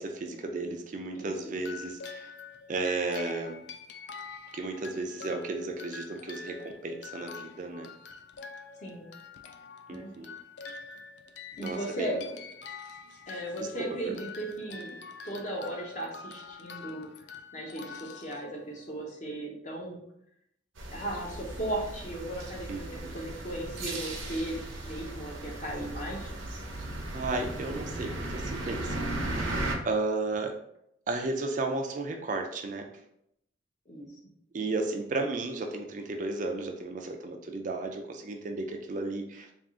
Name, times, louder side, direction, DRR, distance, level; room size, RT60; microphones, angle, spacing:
voice 1, 0.0-2.3 2.7-3.6 4.5-7.9 9.9-10.3 11.6-12.2 13.6-13.7 14.0-14.1 22.7-23.1 26.8-29.1 29.4-30.6 31.1-32.9 34.5-39.5, right 3 dB, 40° right, 4 dB, 0.4 m, -34 dB
sound 1, 1.6-19.0, left 5 dB, 60° left, 0.3 m, -46 dB
voice 2, 11.6-12.3 12.8-14.9 15.2-17.1 17.5-20.0 20.9-24.6 24.9-26.3 33.9-34.1, right 1 dB, 40° left, -2 dB, 0.9 m, -36 dB
sound 2, 20.8-29.7, right 1 dB, 85° right, 0.7 m, -36 dB
3.5 x 2.4 x 3.6 m, 0.76 s
head